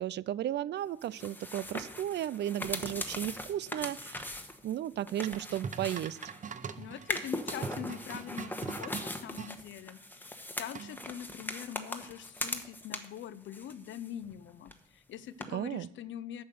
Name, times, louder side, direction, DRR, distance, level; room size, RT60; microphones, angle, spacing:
voice 1, 0.0-4.3 4.6-6.2 15.5-15.9, right 12 dB, 60° right, 21 dB, 0.4 m, -34 dB
sound 1, 1.0-6.5 7.0-13.2 13.5-14.4 14.6-14.7 15.4-15.5, left 1 dB, 10° left, 1.3 m, -40 dB
sound 2, 5.2-9.5 10.7-11.2, right 6 dB, 40° right, 0.8 m, -42 dB
voice 2, 6.8-16.4, left 10 dB, 75° left, 17 dB, 0.7 m, -43 dB
8.9 x 7.9 x 6.8 m, 0.84 s
cardioid pair, 90°, 20 cm